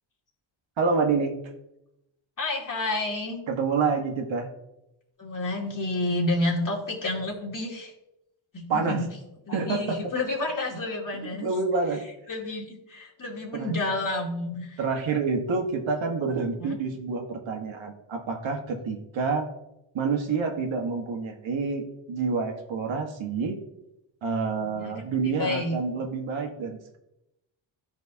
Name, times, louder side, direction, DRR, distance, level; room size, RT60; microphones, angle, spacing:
voice 1, 0.8-1.3 3.5-4.5 8.7-9.0 9.5-10.1 11.4-12.0 13.5-13.7 14.8-19.5 19.9-21.8 22.1-23.6 24.2-27.0, right 4 dB, 70° right, 2 dB, 1.6 m, -28 dB
voice 2, 2.4-3.4 5.2-7.9 8.5-9.1 9.5-11.5 12.3-14.8 16.6-16.8 24.6-25.8, left 2 dB, 40° left, -2 dB, 2.6 m, -30 dB
13.5 x 5.3 x 2.8 m, 0.88 s
cardioid pair, 70°, 47 cm